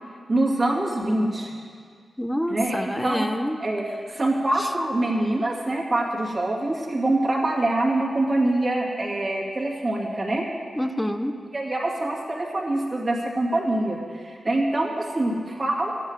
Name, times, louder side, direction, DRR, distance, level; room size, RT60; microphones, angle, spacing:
voice 1, 0.3-1.5 2.5-3.3 3.6-3.8 4.1-10.5 11.5-15.9, right 1 dB, 25° right, -3 dB, 2.4 m, -25 dB
voice 2, 2.2-3.6 4.6-4.7 10.8-11.4, equal, 5° left, 8 dB, 0.7 m, -27 dB
13.0 x 8.2 x 9.6 m, 2.1 s
wide cardioid pair, 150°, 0 cm